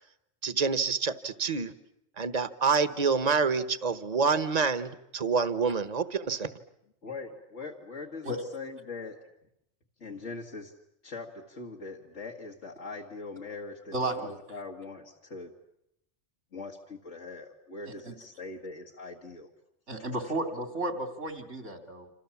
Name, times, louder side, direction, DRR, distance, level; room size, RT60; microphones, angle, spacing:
voice 1, 0.4-1.7 2.2-6.5, right 5 dB, 35° right, 12 dB, 1.2 m, -27 dB
voice 2, 7.0-9.3 10.0-10.8 11.0-15.6 16.5-19.5, left 3 dB, 80° left, -1 dB, 2.4 m, -42 dB
voice 3, 13.9-14.4 17.9-18.2 19.9-22.1, right 1 dB, 75° right, 6 dB, 3.5 m, -33 dB
28.0 x 27.5 x 7.2 m, 0.80 s
omnidirectional pair, 1.2 m